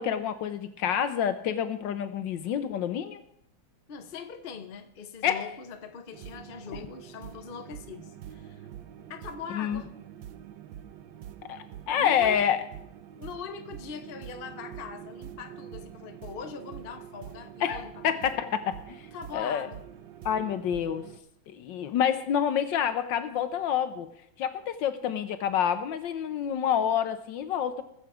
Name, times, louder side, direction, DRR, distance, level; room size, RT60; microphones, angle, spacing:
voice 1, 0.0-3.2 5.2-5.5 9.5-9.8 11.5-12.6 17.6-19.1 19.3-19.7 20.2-21.1 21.5-24.1 24.4-27.8, left 8 dB, 70° left, 1.3 m, -28 dB
voice 2, 3.9-8.6 9.1-9.9 12.0-12.5 13.2-18.2 19.1-19.8, left 6 dB, 40° left, 0.8 m, -41 dB
sound 1, 6.1-21.2, right 10 dB, 70° right, 1.4 m, -45 dB
20.5 x 7.2 x 4.9 m
omnidirectional pair, 2.2 m